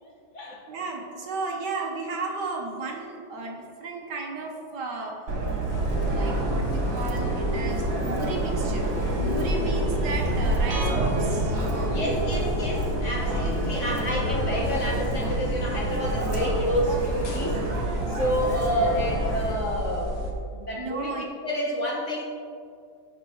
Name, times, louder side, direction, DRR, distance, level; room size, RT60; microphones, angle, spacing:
voice 1, 0.0-0.6 11.9-20.1 20.5-22.2, equal, 40° left, -2 dB, 1.8 m, -29 dB
voice 2, 0.7-5.2 6.1-8.9 9.2-11.6 20.8-21.3, right 3 dB, 60° right, 0 dB, 1.9 m, -34 dB
Subway metro underground, 5.3-19.5, right 2 dB, 80° right, 2.4 m, -28 dB
sound 1, 5.7-20.3, left 1 dB, 85° left, 2.3 m, -32 dB
sound 2, 10.7-12.7, right 1 dB, 45° right, 1.0 m, -31 dB
15.5 x 5.7 x 4.6 m, 2.3 s
omnidirectional pair, 2.1 m